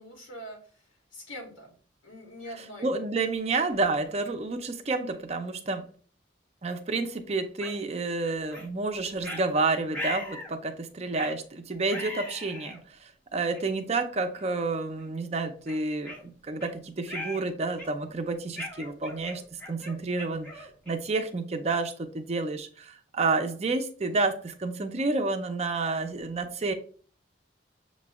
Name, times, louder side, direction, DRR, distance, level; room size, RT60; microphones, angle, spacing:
voice 1, 0.0-1.7 2.0-2.9, equal, 90° left, -1 dB, 1.8 m, -44 dB
voice 2, 2.8-5.9 6.6-26.7, right 3 dB, 35° right, 6 dB, 0.5 m, -30 dB
sound 1, 7.6-7.8 8.5-8.7 9.2-9.4 9.9-10.5 11.1-11.4 11.9-12.8 13.5-13.6 14.3-14.5 15.0-15.1 15.7-16.7 17.1-17.4 17.8-18.1 18.6-21.1, left 1 dB, 10° left, 0.9 m, -39 dB
6.7 x 3.1 x 2.3 m, 0.43 s
head